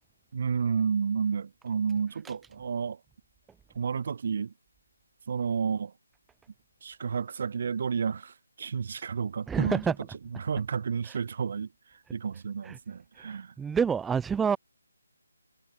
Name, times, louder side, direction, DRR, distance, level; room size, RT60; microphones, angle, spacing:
voice 1, 0.3-3.0 3.7-4.5 5.3-5.9 6.8-9.8 10.3-11.7 12.1-13.5, right 6 dB, 40° right, 4.2 m, -31 dB
voice 2, 9.5-9.9 11.1-11.2 12.6-12.8 13.6-14.6, right 6 dB, 5° right, 1.2 m, -27 dB
hypercardioid pair, 170°, 0 cm